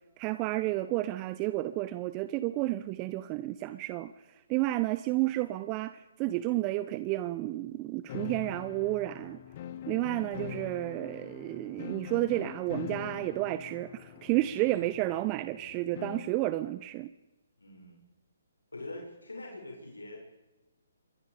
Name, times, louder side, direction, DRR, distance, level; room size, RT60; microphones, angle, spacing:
voice 1, 0.2-4.1 4.5-9.4 9.9-17.1, right 17 dB, 25° right, 13 dB, 0.8 m, -31 dB
sound 1, 8.1-16.5, left 10 dB, 40° left, 1.6 m, -43 dB
voice 2, 17.6-18.0 18.7-20.2, left 2 dB, 85° left, 0 dB, 6.9 m, -44 dB
27.0 x 23.0 x 5.2 m, 1.0 s
figure-of-eight pair, 140°, 0 cm